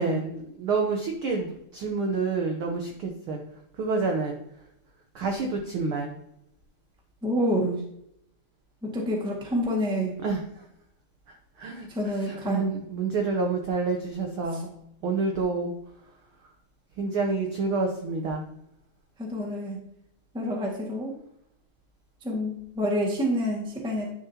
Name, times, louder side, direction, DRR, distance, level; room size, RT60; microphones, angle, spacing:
voice 1, 0.0-3.4 3.8-4.4 5.1-6.2 10.2-10.7 11.3-14.7 15.0-15.7 17.0-18.4, right 4 dB, 70° right, 2 dB, 1.3 m, -28 dB
voice 2, 7.2-7.8 8.8-10.1 11.9-12.6 19.2-19.8 20.3-21.1 22.2-24.1, equal, 5° right, -1 dB, 0.9 m, -28 dB
10.5 x 6.5 x 2.8 m, 0.76 s
omnidirectional pair, 3.4 m